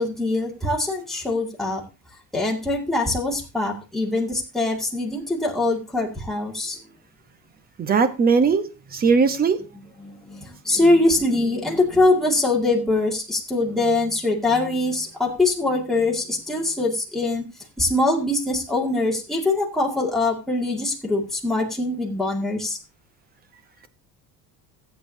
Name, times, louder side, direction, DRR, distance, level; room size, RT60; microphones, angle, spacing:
voice 1, 0.0-1.8 2.3-6.8 10.0-17.4 17.8-22.8, left 2 dB, ahead, 2.1 m, -23 dB
voice 2, 7.8-8.6 8.9-9.6, right 5 dB, 25° right, 0.9 m, -18 dB
15.5 x 8.3 x 2.7 m
cardioid pair, 150°, 35 cm